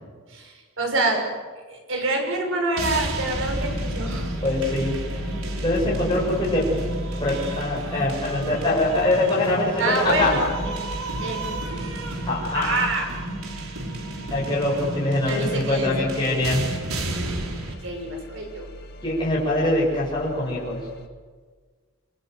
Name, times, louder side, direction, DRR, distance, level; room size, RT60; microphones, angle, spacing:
voice 1, 0.3-1.2 1.7-4.3 9.8-10.5 11.2-11.8 12.5-13.0 15.2-16.1 17.8-18.7, right 2 dB, 65° right, 3 dB, 6.5 m, -26 dB
sound 1, 2.8-17.7, right 2 dB, 85° right, 4.3 m, -32 dB
sound 2, 3.4-21.1, equal, 50° left, 2.1 m, -37 dB
voice 2, 4.4-4.9 5.6-6.6 7.2-10.4 12.3-12.8 14.3-16.7 19.0-20.8, left 2 dB, 20° left, -5 dB, 7.3 m, -23 dB
28.5 x 24.5 x 8.0 m, 1.5 s
head